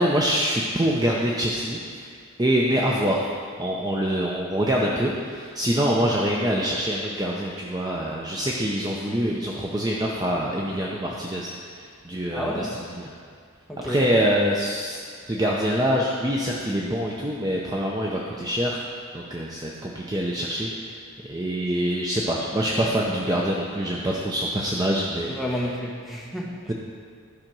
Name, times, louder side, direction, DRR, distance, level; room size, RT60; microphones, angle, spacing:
voice 1, 0.0-2.1 2.4-3.2 3.6-13.1 13.8-15.0 15.3-18.8 19.1-20.9 21.2-25.6 26.7-26.8, equal, 15° right, -3 dB, 0.6 m, -25 dB
voice 2, 12.3-12.8 13.7-14.1 25.3-26.7, equal, ahead, -3 dB, 1.0 m, -31 dB
12.0 x 5.1 x 6.0 m, 2.1 s
head